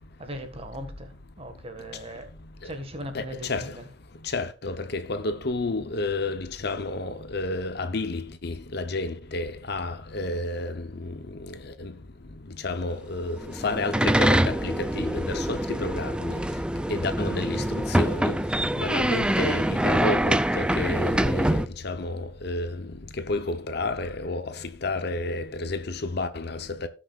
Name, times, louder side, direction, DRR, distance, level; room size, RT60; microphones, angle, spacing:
voice 1, 0.2-1.1 1.4-2.3 2.6-3.9, equal, 30° right, 1.7 m, -38 dB
voice 2, 4.3-10.7 11.8-11.9 12.6-13.4 13.6-16.1 16.9-17.6 18.0-18.4 18.8-21.5 21.8-22.2 22.4-22.7 23.3-24.4 24.8-26.9, left 2 dB, 55° left, 0.9 m, -30 dB
sound 1, 13.4-21.7, right 1 dB, 5° right, 0.4 m, -25 dB
18.0 x 6.4 x 2.5 m
head